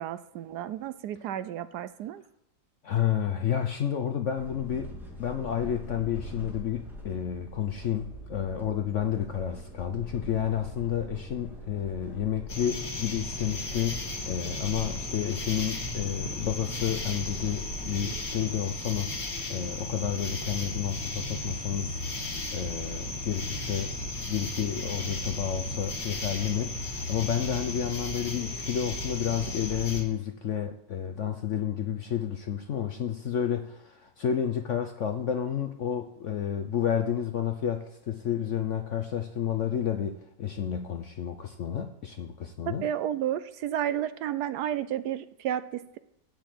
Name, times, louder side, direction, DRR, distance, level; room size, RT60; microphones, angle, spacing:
voice 1, 0.0-2.2 42.7-46.0, right 11 dB, 75° right, 13 dB, 1.0 m, -32 dB
voice 2, 2.8-4.9 5.2-19.1 19.5-23.9 24.3-42.9, left 9 dB, 60° left, 7 dB, 0.8 m, -30 dB
sound 1, 4.4-18.2, left 1 dB, ahead, 2.0 m, -42 dB
sound 2, 12.5-30.0, left 2 dB, 80° left, 2.6 m, -35 dB
8.5 x 7.1 x 7.6 m, 0.75 s
omnidirectional pair, 1.9 m